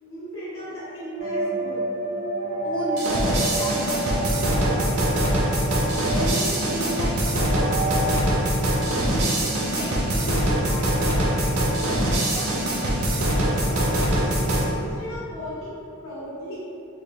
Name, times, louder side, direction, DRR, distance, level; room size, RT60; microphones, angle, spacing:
voice 1, 0.0-1.9 13.4-14.4 14.7-16.6, equal, 70° left, -10 dB, 0.7 m, -37 dB
sound 1, 1.2-8.2, right 2 dB, 35° right, 0.6 m, -30 dB
voice 2, 2.6-5.4 5.9-8.2 8.7-12.9, equal, 25° left, -3 dB, 0.4 m, -34 dB
sound 2, 3.0-14.7, right 1 dB, 85° right, 0.6 m, -23 dB
3.2 x 2.3 x 3.5 m, 2.5 s
head